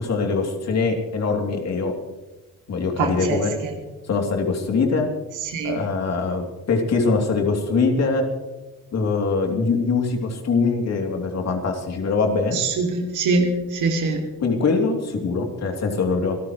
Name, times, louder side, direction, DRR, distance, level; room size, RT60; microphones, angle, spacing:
voice 1, 0.0-1.9 2.7-3.5 4.1-5.1 5.6-8.2 8.9-12.6 14.4-16.4, left 4 dB, 60° left, 2 dB, 3.1 m, -22 dB
voice 2, 3.0-3.7 5.4-5.8 12.5-14.2, right 3 dB, 85° right, 2 dB, 2.6 m, -23 dB
25.5 x 14.0 x 3.2 m, 1.1 s
cardioid pair, 90°, 30 cm